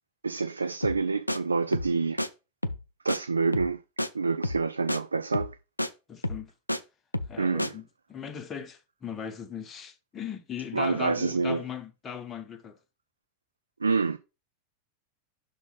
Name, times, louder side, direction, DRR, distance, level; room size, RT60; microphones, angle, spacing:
voice 1, 0.2-2.2 3.0-3.8 4.1-5.6 7.4-7.8 10.7-11.6 13.8-14.2, right 4 dB, 75° right, 0.3 m, -27 dB
sound 1, 0.8-1.0 1.3-1.4 1.7-2.3 2.6-2.8 3.1-3.2 3.5-3.7 4.0-4.1 4.4-4.6 4.9-5.0 5.3-5.5 5.8-5.9 6.2-6.8 7.1-7.3 7.6-7.7, left 1 dB, 85° left, 0.4 m, -30 dB
voice 2, 6.1-6.5 7.3-12.8, left 7 dB, 25° left, 0.9 m, -38 dB
6.1 x 4.0 x 5.5 m
figure-of-eight pair, 90°, 0 cm